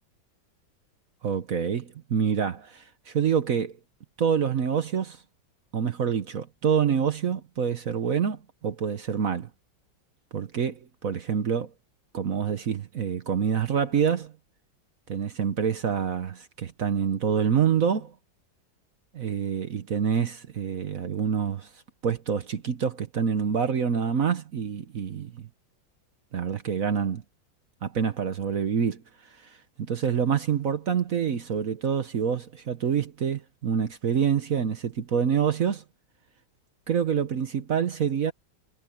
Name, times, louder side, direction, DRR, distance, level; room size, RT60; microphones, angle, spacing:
voice 1, 1.2-3.8 4.2-5.2 5.7-9.5 10.3-11.7 12.1-14.3 15.1-18.1 19.1-21.7 22.0-25.5 26.3-27.2 27.8-29.0 29.8-35.8 36.9-38.3, right 7 dB, 50° right, 1.2 m, -26 dB
omnidirectional pair, 2.1 m